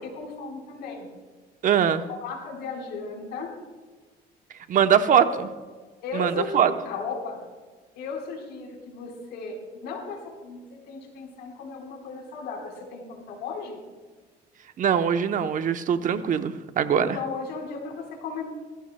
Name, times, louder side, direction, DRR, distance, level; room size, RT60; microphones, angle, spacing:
voice 1, 0.0-1.1 2.2-3.5 5.1-5.3 6.0-7.4 7.9-13.8 17.0-18.4, left 4 dB, 85° left, 0 dB, 4.0 m, -35 dB
voice 2, 1.6-2.0 4.7-5.2 6.1-6.7 14.8-17.2, right 8 dB, 50° right, 9 dB, 0.8 m, -22 dB
19.5 x 15.0 x 2.2 m, 1.3 s
cardioid pair, 110°, 17 cm